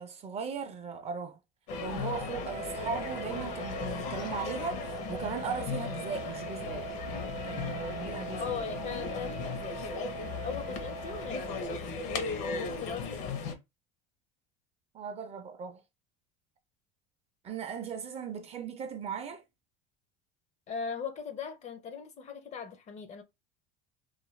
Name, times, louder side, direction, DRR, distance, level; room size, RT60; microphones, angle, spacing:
voice 1, 0.0-1.4 1.8-6.9 7.4-8.4 14.9-15.8 17.4-19.4, right 6 dB, 30° right, 0.4 m, -38 dB
sound 1, 1.7-13.5, left 4 dB, 65° left, 0.7 m, -37 dB
Wind instrument woodwind instrument, 2.4-11.8, right 7 dB, 90° right, 0.6 m, -43 dB
voice 2, 8.4-10.1 10.4-12.0 12.6-13.4 20.7-23.2, left 6 dB, 35° left, 0.4 m, -39 dB
2.4 x 2.2 x 3.0 m
supercardioid pair, 125°, 21 cm